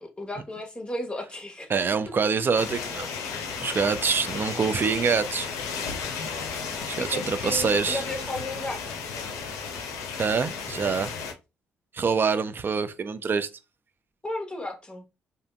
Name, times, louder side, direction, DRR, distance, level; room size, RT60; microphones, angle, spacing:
voice 1, 0.0-1.7 7.0-9.0 14.2-15.0, left 1 dB, 20° left, 0.8 m, -34 dB
voice 2, 1.7-3.1 3.6-5.5 6.9-8.0 10.2-11.1 11.9-13.5, right 5 dB, 40° right, 0.4 m, -25 dB
sound 1, 2.6-11.3, left 5 dB, 80° left, 0.5 m, -34 dB
2.7 x 2.5 x 2.2 m
hypercardioid pair, 55°, 5 cm